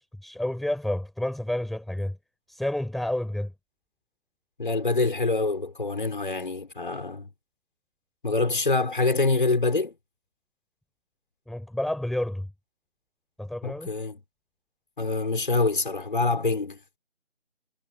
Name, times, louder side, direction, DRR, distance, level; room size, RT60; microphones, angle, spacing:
voice 1, 0.0-2.2 2.5-3.5 11.5-12.5 13.4-13.9, left 1 dB, ahead, 6.2 m, -30 dB
voice 2, 4.6-7.3 8.2-9.9 13.6-14.2 15.0-16.8, left 3 dB, 40° left, 5.9 m, -25 dB
figure-of-eight pair, 165°, 38 cm